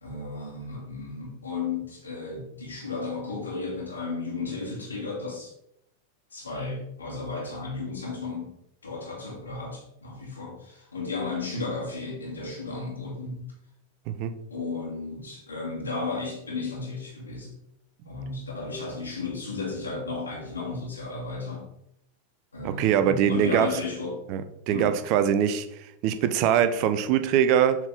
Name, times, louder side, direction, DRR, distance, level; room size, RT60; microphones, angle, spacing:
voice 1, 0.0-5.5 6.3-8.5 8.8-13.4 14.5-17.5 18.1-21.7 22.5-24.2 24.7-25.0, left 3 dB, 75° left, -3 dB, 2.0 m, -34 dB
voice 2, 22.6-23.7 24.3-24.4 24.7-25.7 26.0-27.8, right 9 dB, 45° right, 10 dB, 0.6 m, -22 dB
7.1 x 4.0 x 3.7 m, 0.76 s
figure-of-eight pair, 90°, 0 cm